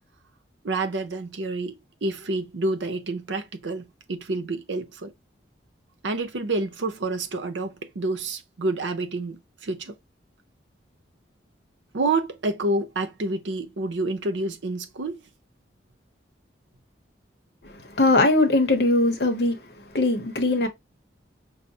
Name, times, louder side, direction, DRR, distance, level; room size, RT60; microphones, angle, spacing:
voice 1, 0.6-5.1 6.0-9.9 11.9-15.2, right 2 dB, 75° right, 0.6 m, -28 dB
voice 2, 18.0-19.6 19.9-20.7, left 2 dB, 60° left, 0.7 m, -20 dB
5.5 x 2.0 x 2.7 m
head